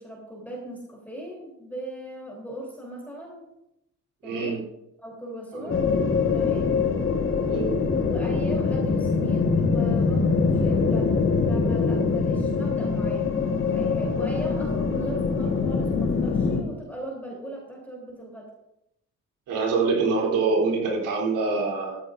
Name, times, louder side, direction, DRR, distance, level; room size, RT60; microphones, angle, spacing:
voice 1, 0.0-3.5 4.2-4.6 5.0-6.0 6.3-6.8 8.1-11.2 11.4-18.5, right 1 dB, 5° left, -2 dB, 3.5 m, -38 dB
voice 2, 4.2-4.6 5.5-5.7 7.4-7.8 19.5-22.0, right 4 dB, 90° right, -2 dB, 3.5 m, -25 dB
sound 1, 5.7-16.6, left 4 dB, 45° left, 1.4 m, -23 dB
14.5 x 13.0 x 2.6 m, 0.84 s
cardioid pair, 90°, 30 cm